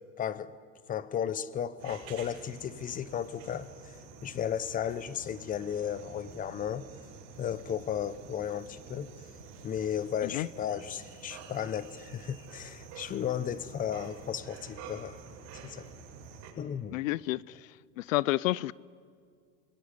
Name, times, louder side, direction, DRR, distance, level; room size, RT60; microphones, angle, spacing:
voice 1, 0.2-0.5 0.9-3.7 4.2-6.9 7.4-9.1 9.6-15.1 15.6-15.9 16.6-17.0, left 9 dB, 20° left, 0.9 m, -34 dB
sound 1, 1.8-16.5, right 5 dB, 45° right, 7.4 m, -49 dB
voice 2, 16.9-17.6 18.0-18.7, left 18 dB, 85° left, 0.6 m, -29 dB
27.0 x 22.5 x 9.9 m
supercardioid pair, 140°, 38 cm